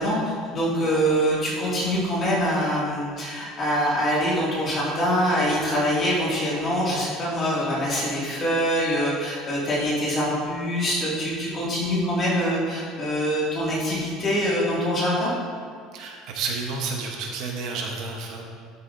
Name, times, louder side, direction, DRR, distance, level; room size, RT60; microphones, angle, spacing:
voice 1, 0.0-15.3, equal, 25° left, -6 dB, 2.3 m, -24 dB
voice 2, 15.9-18.4, right 4 dB, 50° right, 1 dB, 1.0 m, -30 dB
12.5 x 6.8 x 2.7 m, 2.1 s
cardioid pair, 170°, 0 cm